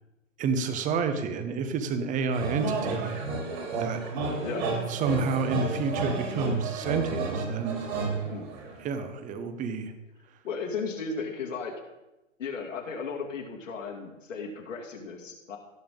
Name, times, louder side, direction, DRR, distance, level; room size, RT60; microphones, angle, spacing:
voice 1, 0.4-3.2 3.8-4.0 4.9-7.8 8.8-9.9, right 5 dB, 20° right, 9 dB, 1.0 m, -29 dB
sound 1, 2.3-8.9, right 3 dB, 50° right, 3.7 m, -31 dB
voice 2, 10.4-11.7 12.4-15.6, left 5 dB, 70° left, 0 dB, 2.8 m, -35 dB
16.5 x 7.1 x 3.8 m, 1.0 s
figure-of-eight pair, 120°, 39 cm